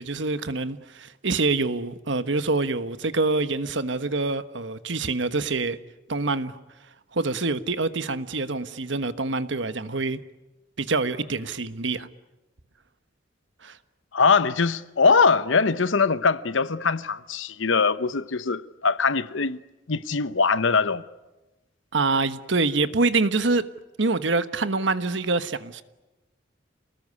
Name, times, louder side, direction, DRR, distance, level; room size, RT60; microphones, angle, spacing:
voice 1, 0.0-5.8 6.1-6.6 7.1-10.2 10.8-12.1 13.6-13.8 21.9-23.6 24.0-25.8, right 3 dB, 70° right, 1.3 m, -25 dB
voice 2, 14.1-19.6 19.9-21.0, left 4 dB, 80° left, 0.9 m, -22 dB
29.0 x 19.5 x 9.7 m
head